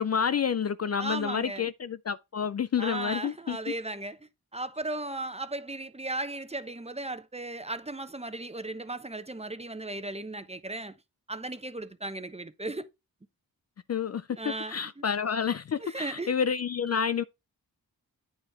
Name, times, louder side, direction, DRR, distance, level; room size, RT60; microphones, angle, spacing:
voice 1, 0.0-3.6 13.9-17.2, left 7 dB, 45° left, 0.4 m, -29 dB
voice 2, 1.0-1.7 2.8-4.2 4.5-11.0 11.3-12.9 14.3-14.8 15.8-16.3, right 2 dB, 15° right, 0.9 m, -36 dB
8.7 x 7.1 x 3.5 m
cardioid pair, 60°, 37 cm